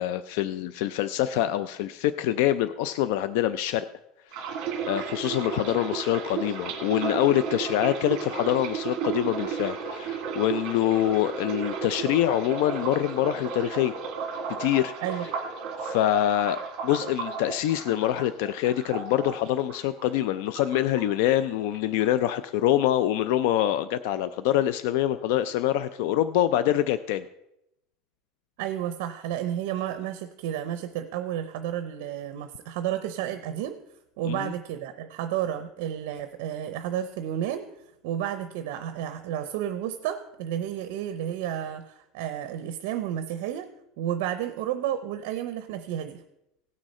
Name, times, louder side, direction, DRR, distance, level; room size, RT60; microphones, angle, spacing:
voice 1, 0.0-3.9 4.3-4.4 4.9-14.0 14.6-14.9 15.8-27.3 34.3-34.5, left 12 dB, 65° left, 13 dB, 0.4 m, -25 dB
sound 1, 4.3-20.3 20.6-21.5 21.7-22.1, right 6 dB, 45° right, 1.9 m, -34 dB
voice 2, 28.6-33.8 34.2-37.7 38.0-43.7 44.0-46.2, right 10 dB, 70° right, 9 dB, 0.6 m, -31 dB
17.0 x 6.3 x 4.2 m, 0.85 s
cardioid pair, 170°, 0 cm